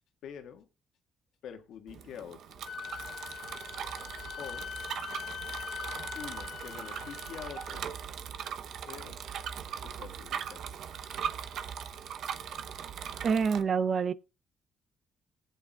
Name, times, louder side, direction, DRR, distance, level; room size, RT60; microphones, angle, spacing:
voice 1, 0.2-0.7 1.4-2.6 4.4-4.7 6.1-7.9 8.9-9.2 9.8-10.8, left 8 dB, 80° left, 1.6 m, -46 dB
Bicycle, 1.9-13.6, right 8 dB, 75° right, 0.9 m, -40 dB
Wind instrument woodwind instrument, 2.6-7.8, left 8 dB, 60° left, 0.5 m, -42 dB
voice 2, 13.2-14.1, right 6 dB, 50° right, 0.6 m, -26 dB
19.0 x 8.4 x 2.3 m
cardioid pair, 90°, 0 cm